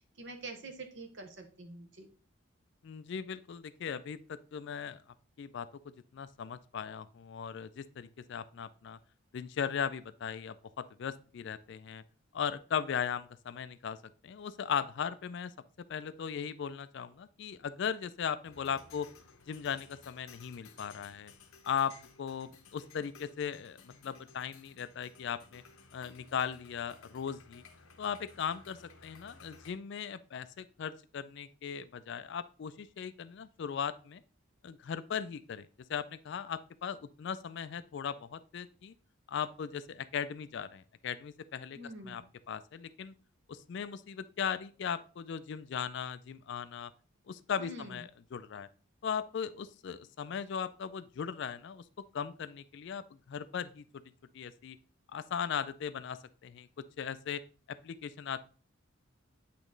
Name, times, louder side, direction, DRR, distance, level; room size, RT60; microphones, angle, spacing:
voice 1, 0.2-2.1 41.7-42.2 47.6-48.0, right 2 dB, 55° right, 6 dB, 1.0 m, -45 dB
voice 2, 2.8-5.0 5.4-5.7 6.1-9.0 9.3-12.0 12.3-14.0 14.2-15.5 15.9-19.1 19.5-21.3 21.6-25.6 25.9-27.6 28.0-34.2 34.6-38.9 39.3-43.1 43.5-46.9 47.3-48.7 49.0-53.8 54.3-54.8 55.1-56.7 57.0-57.4 57.8-58.4, left 7 dB, 55° left, 14 dB, 0.3 m, -38 dB
sound 1, 18.4-29.7, left 5 dB, 80° left, 0.8 m, -57 dB
8.5 x 3.0 x 3.8 m, 0.37 s
head